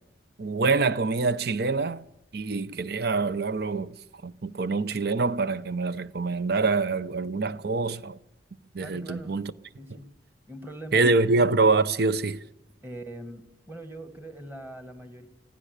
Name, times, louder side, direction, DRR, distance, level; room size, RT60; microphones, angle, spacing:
voice 1, 0.4-2.1 2.3-3.9 4.2-8.2 8.7-9.5 10.9-12.4, right 3 dB, 55° right, 0.7 m, -25 dB
voice 2, 8.8-9.4 9.8-10.1 10.5-11.2 12.8-15.3, right 1 dB, 10° right, 1.9 m, -42 dB
24.5 x 16.5 x 6.6 m
head